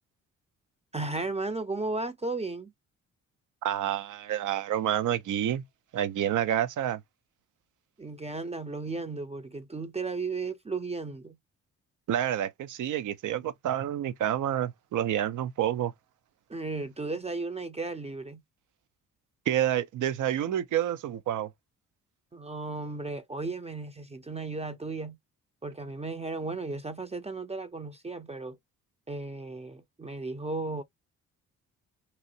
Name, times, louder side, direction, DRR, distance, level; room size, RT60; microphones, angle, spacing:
voice 1, 0.9-2.7 8.0-11.4 16.5-18.4 22.3-25.2 25.6-28.6 29.1-30.8, right 3 dB, 20° right, 0.6 m, -35 dB
voice 2, 3.6-5.6 5.9-7.0 12.1-15.9 19.5-21.5, right 11 dB, 60° right, 0.6 m, -28 dB
3.1 x 2.6 x 2.7 m
hypercardioid pair, 45°, 34 cm